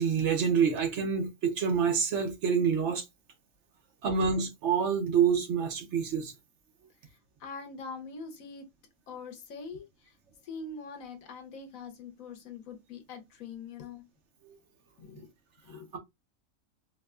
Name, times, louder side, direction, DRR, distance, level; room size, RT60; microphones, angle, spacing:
voice 1, 0.0-3.0 4.0-6.3 14.5-14.6, right 6 dB, 65° right, 1.0 m, -27 dB
voice 2, 7.4-8.7 9.1-10.1 10.4-14.0 15.0-15.3 15.7-15.9, left 4 dB, 85° left, 1.3 m, -43 dB
4.5 x 2.2 x 2.4 m
omnidirectional pair, 1.4 m